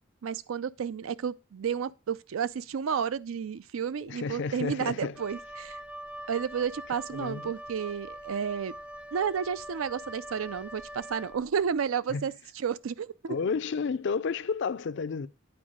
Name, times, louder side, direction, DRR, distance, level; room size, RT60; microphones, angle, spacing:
voice 1, 0.2-5.8 6.3-8.8 9.1-13.4, right 7 dB, 80° right, 0.4 m, -31 dB
voice 2, 4.0-5.2 7.1-7.5 12.1-12.3 13.3-15.3, left 5 dB, 60° left, 0.4 m, -31 dB
Wind instrument woodwind instrument, 5.1-11.7, equal, 5° right, 0.4 m, -43 dB
9.0 x 4.6 x 5.0 m
head